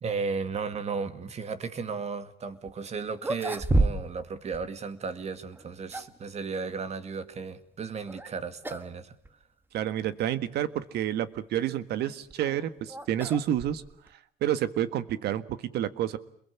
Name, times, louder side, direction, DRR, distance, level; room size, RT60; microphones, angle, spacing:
voice 1, 0.0-9.2, right 5 dB, 40° right, 11 dB, 2.3 m, -35 dB
sound 1, 2.7-2.8 3.2-4.3 4.5-4.7 5.5-6.3 8.1-8.3 8.6-8.9 9.2-9.3 10.1-10.2 12.0-14.1, right 2 dB, 10° right, 1.4 m, -30 dB
voice 2, 9.7-13.8 14.4-16.2, right 11 dB, 75° right, 13 dB, 1.7 m, -29 dB
28.0 x 22.0 x 8.5 m, 0.64 s
cardioid pair, 110°, 17 cm